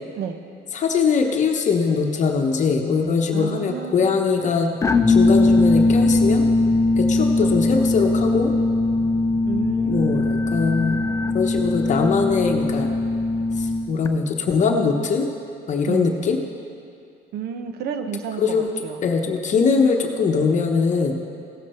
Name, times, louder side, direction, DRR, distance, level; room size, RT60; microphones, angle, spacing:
voice 1, 0.7-4.8 5.1-6.4 7.0-8.5 9.9-11.0 11.3-12.9 13.6-15.3 15.7-16.4 18.4-18.7 19.0-21.1, left 5 dB, 45° left, 3 dB, 0.9 m, -21 dB
voice 2, 3.3-4.1 7.4-7.5 7.8-7.9 9.4-10.3 15.9-16.2 17.3-19.1, right 7 dB, 70° right, 7 dB, 0.9 m, -31 dB
sound 1, 4.8-14.1, left 2 dB, 20° left, 0.4 m, -20 dB
16.5 x 7.3 x 4.3 m, 2.5 s
cardioid pair, 110°, 17 cm